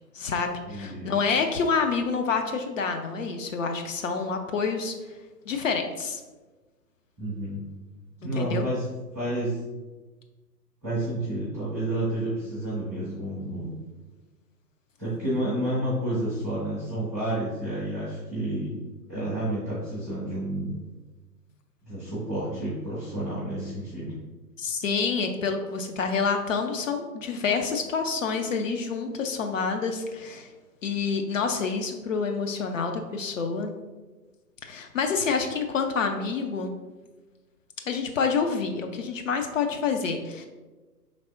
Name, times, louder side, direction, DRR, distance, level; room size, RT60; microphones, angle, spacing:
voice 1, 0.1-4.9 5.5-6.2 8.2-8.6 24.6-30.5 30.8-33.7 34.6-36.7 37.9-40.5, left 5 dB, 50° left, 5 dB, 0.5 m, -28 dB
voice 2, 0.7-1.1 7.2-7.6 8.2-8.8 9.1-9.6 10.8-13.8 15.0-18.8 19.1-20.7 21.8-24.2, right 1 dB, 10° right, -11 dB, 0.4 m, -30 dB
4.9 x 3.3 x 2.5 m, 1.3 s
figure-of-eight pair, 130°, 50 cm